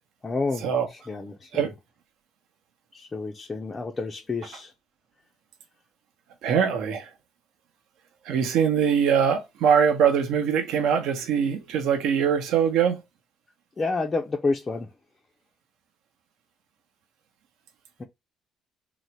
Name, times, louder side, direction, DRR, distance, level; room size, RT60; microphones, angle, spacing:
voice 1, 0.2-1.7 2.9-4.7 13.8-14.9 18.0-18.1, left 3 dB, 15° left, 0.4 m, -29 dB
voice 2, 6.4-7.1 8.2-13.0, right 7 dB, 70° right, 0.9 m, -22 dB
4.0 x 2.0 x 4.5 m
cardioid pair, 180°, 0 cm